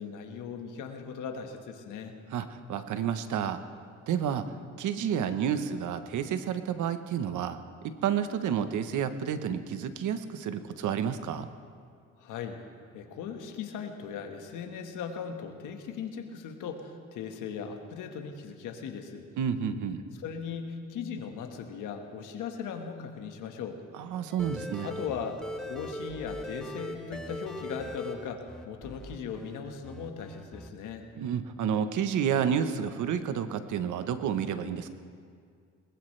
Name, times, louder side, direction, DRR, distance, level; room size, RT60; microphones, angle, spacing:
voice 1, 0.0-2.1 12.2-12.6 12.9-19.3 20.2-23.8 24.8-31.1, left 6 dB, 90° left, 4 dB, 1.6 m, -38 dB
voice 2, 2.3-3.6 4.1-7.6 7.8-11.5 19.4-20.0 24.0-24.9 31.2-34.9, right 8 dB, 75° right, 10 dB, 1.1 m, -30 dB
sound 1, 24.3-29.6 29.8-30.7, left 1 dB, ahead, 1.5 m, -40 dB
21.5 x 19.5 x 3.3 m, 2.2 s
cardioid pair, 90°, 30 cm